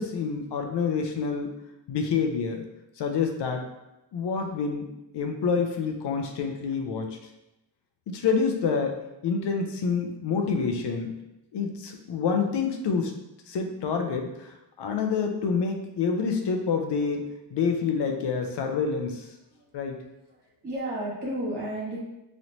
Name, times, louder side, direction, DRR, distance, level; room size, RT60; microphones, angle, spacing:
voice 1, 0.0-1.5 1.9-2.6 3.0-3.6 4.1-4.9 5.1-7.2 8.1-9.0 9.2-11.1 11.5-13.1 13.5-14.5 14.8-19.3 19.7-20.0, left 5 dB, 70° left, 4 dB, 0.6 m, -27 dB
voice 2, 20.4-22.0, right 1 dB, 65° right, -6 dB, 1.4 m, -32 dB
3.1 x 2.9 x 2.7 m, 0.91 s
wide cardioid pair, 165°, 42 cm